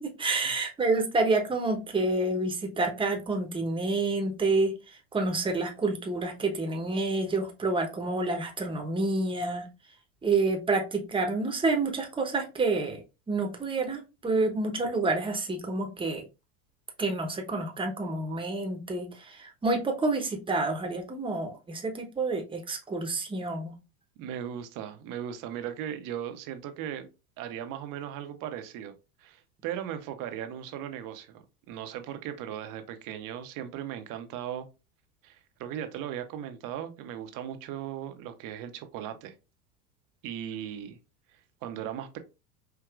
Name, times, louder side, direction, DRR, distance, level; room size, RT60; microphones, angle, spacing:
voice 1, 0.0-9.7 10.2-16.3 17.0-23.7, right 3 dB, 10° right, 0.9 m, -28 dB
voice 2, 24.2-27.1 27.4-28.9 29.2-34.7 35.2-39.3 40.2-41.0 41.6-42.2, right 10 dB, 50° right, 0.8 m, -37 dB
4.7 x 2.8 x 2.4 m
hypercardioid pair, 100°, 44 cm